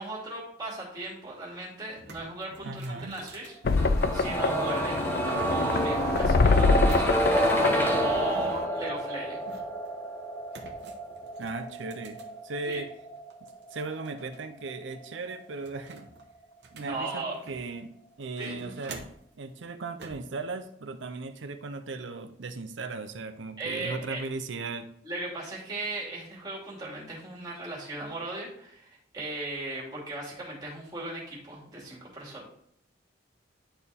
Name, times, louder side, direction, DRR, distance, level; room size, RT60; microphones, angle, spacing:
voice 1, 0.0-9.4 12.7-12.8 16.8-17.3 18.4-18.5 23.6-24.2 25.0-32.5, right 2 dB, 20° right, -5 dB, 2.5 m, -37 dB
sound 1, 1.5-1.6 1.8-4.6 5.5-7.5 8.3-9.9 10.5-12.9 13.3-14.4 14.7-14.8 15.2-17.8 18.2-19.3 20.0-20.3, right 2 dB, 65° right, 1.0 m, -47 dB
voice 2, 2.6-3.2 11.4-12.9 13.7-16.1 16.7-17.9 18.2-19.0 19.4-24.9, right 3 dB, 80° right, 7 dB, 0.6 m, -37 dB
sound 2, 3.6-8.6, left 4 dB, 55° left, 0.4 m, -25 dB
sound 3, 3.8-15.6 15.9-16.0, right 1 dB, 10° left, 0.8 m, -30 dB
11.0 x 4.4 x 3.5 m, 0.68 s
head